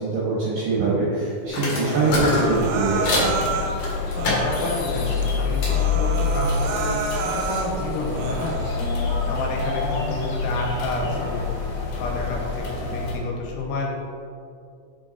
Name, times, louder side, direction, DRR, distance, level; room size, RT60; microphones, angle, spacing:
voice 1, 0.0-3.4, right 3 dB, 75° right, -7 dB, 2.0 m, -23 dB
sound 1, 1.5-3.3 3.8-5.8 6.1-8.8, left 2 dB, 50° left, 2.3 m, -29 dB
Human voice, 1.7-3.8 4.2-4.8 5.2-5.3 5.6-7.7 8.1-8.7, right 4 dB, 90° right, 3.2 m, -29 dB
sound 2, 2.1-13.1, left 4 dB, 65° left, 2.6 m, -27 dB
voice 2, 4.2-8.6 9.3-11.5 12.0-13.9, left 3 dB, 85° left, -1 dB, 3.2 m, -30 dB
7.9 x 4.3 x 4.0 m, 2.4 s
omnidirectional pair, 5.5 m